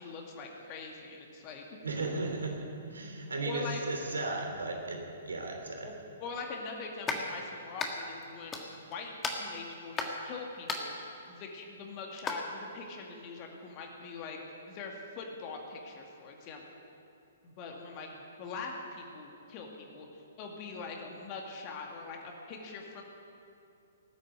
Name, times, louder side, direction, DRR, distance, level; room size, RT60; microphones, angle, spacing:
voice 1, 0.0-1.6 3.5-3.8 5.8-5.9 6.2-9.1 9.4-10.9 11.3-14.4 14.7-16.8 17.4-20.1 20.4-23.0, left 4 dB, 30° left, 1 dB, 2.2 m, -43 dB
voice 2, 1.8-5.9, right 2 dB, 70° right, 2 dB, 2.8 m, -35 dB
sound 1, 7.1-7.3 7.8-8.2 8.5-8.9 9.2-10.2 10.7-11.0 12.1-12.4, left 4 dB, 15° left, 1.6 m, -35 dB
19.0 x 8.7 x 8.1 m, 2.6 s
figure-of-eight pair, 120°, 0 cm